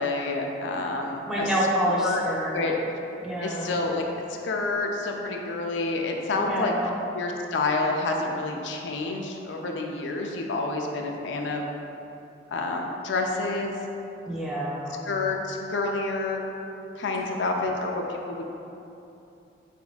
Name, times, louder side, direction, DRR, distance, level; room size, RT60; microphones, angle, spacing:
voice 1, 0.0-1.5 2.0-2.2 2.5-2.7 3.4-4.0 4.4-6.7 7.1-11.7 12.5-13.8 15.1-16.4 17.0-18.4, left 3 dB, 80° left, 1 dB, 0.4 m, -28 dB
voice 2, 1.2-2.6 3.2-3.7 6.3-7.0 14.3-15.0 17.1-17.7, right 1 dB, 5° right, -5 dB, 0.5 m, -28 dB
4.1 x 4.0 x 2.3 m, 2.8 s
head